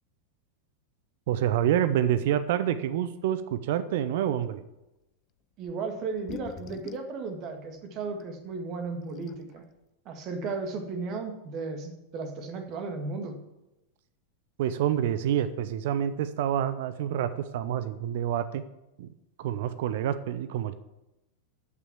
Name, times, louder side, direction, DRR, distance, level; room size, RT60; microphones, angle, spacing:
voice 1, 1.3-4.6 14.6-18.6 19.0-19.1 19.4-20.7, right 10 dB, 55° right, 13 dB, 0.7 m, -27 dB
voice 2, 5.6-9.6 10.1-13.4, right 4 dB, 35° right, 5 dB, 2.0 m, -35 dB
sound 1, 5.7-5.8 6.1-7.1 8.2-8.3 8.9-9.0 9.1-9.6, left 12 dB, 30° left, 0.6 m, -42 dB
14.0 x 6.1 x 7.3 m, 0.96 s
figure-of-eight pair, 90°, 0 cm